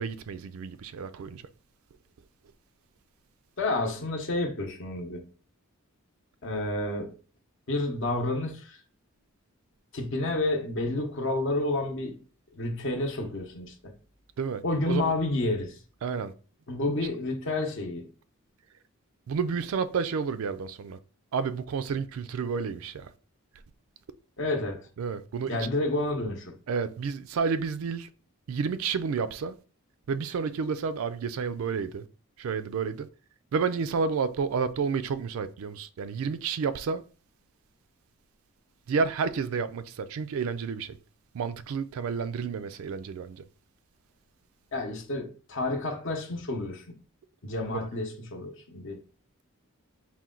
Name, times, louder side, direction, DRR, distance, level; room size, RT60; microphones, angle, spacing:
voice 1, 0.0-1.4 14.4-15.1 16.0-16.3 19.3-21.0 21.3-23.1 25.0-25.7 26.7-28.1 28.5-29.6 30.1-32.1 32.4-33.1 33.5-37.0 38.9-41.0 41.3-43.4, right 5 dB, 70° right, 0.3 m, -30 dB
voice 2, 3.6-5.2 6.4-7.2 7.7-8.8 9.9-12.2 12.5-13.9 14.6-15.8 16.7-18.1 24.4-24.9 25.5-26.5 44.7-47.0 47.4-49.0, left 2 dB, 60° left, 0.8 m, -30 dB
4.3 x 2.2 x 3.7 m
head